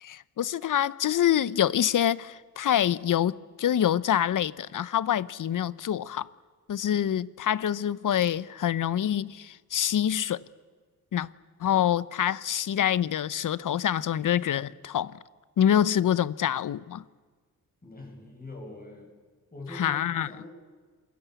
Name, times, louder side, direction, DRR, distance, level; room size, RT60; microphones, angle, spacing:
voice 1, 0.0-6.3 6.7-10.4 11.1-11.3 11.6-15.1 15.6-17.0 19.7-20.3, left 10 dB, 65° left, 0.8 m, -26 dB
voice 2, 17.8-19.1 19.5-20.5, left 2 dB, 25° left, 7.9 m, -43 dB
28.0 x 22.0 x 8.3 m
cardioid pair, 100°, 33 cm